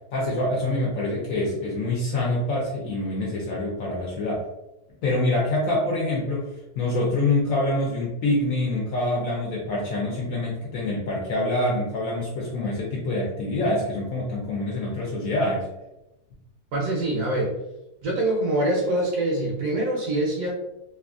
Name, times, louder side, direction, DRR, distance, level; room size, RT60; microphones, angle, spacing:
voice 1, 0.1-4.4 5.0-6.5 6.8-15.7, left 2 dB, 65° left, -4 dB, 0.9 m, -25 dB
voice 2, 16.7-17.5 18.0-20.5, right 1 dB, 75° right, -4 dB, 1.2 m, -24 dB
3.0 x 2.4 x 2.4 m, 0.94 s
omnidirectional pair, 1.7 m